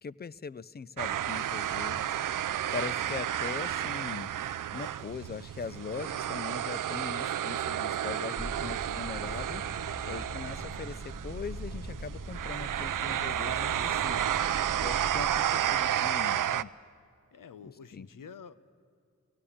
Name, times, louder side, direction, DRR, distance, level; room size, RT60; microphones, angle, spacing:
voice 1, 0.0-2.2 2.7-4.3 4.7-9.6 10.0-14.3 14.8-16.7 17.6-18.1, left 6 dB, 30° left, 19 dB, 0.4 m, -41 dB
sound 1, 1.0-16.6, right 10 dB, 85° right, 0.5 m, -32 dB
sound 2, 8.4-15.3, equal, 5° right, 1.8 m, -42 dB
voice 2, 10.6-11.0 17.3-18.6, left 6 dB, 90° left, 14 dB, 0.8 m, -49 dB
17.5 x 16.0 x 10.0 m, 2.3 s
wide cardioid pair, 75°, 31 cm